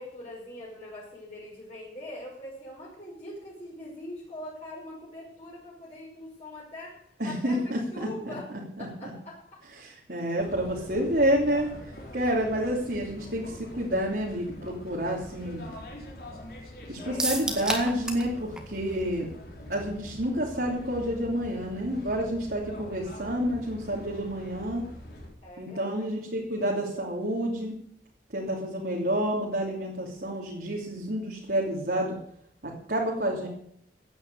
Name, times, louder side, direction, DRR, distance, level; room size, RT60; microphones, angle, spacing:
voice 1, 0.0-8.5 8.8-9.4 12.1-12.2 17.0-17.3 25.4-26.0, left 1 dB, 35° left, -7 dB, 5.6 m, -42 dB
voice 2, 7.2-8.3 9.8-11.7 12.1-15.6 16.9-19.3 19.7-24.8 25.6-27.7 28.3-32.1 32.6-33.5, equal, 60° right, -3 dB, 3.0 m, -29 dB
sound 1, 10.4-25.3, left 1 dB, 55° left, 4.5 m, -44 dB
Opening a can, 17.2-18.3 18.6-18.7 19.0-19.1, right 1 dB, 5° right, 1.9 m, -30 dB
16.0 x 9.7 x 6.9 m, 0.69 s
head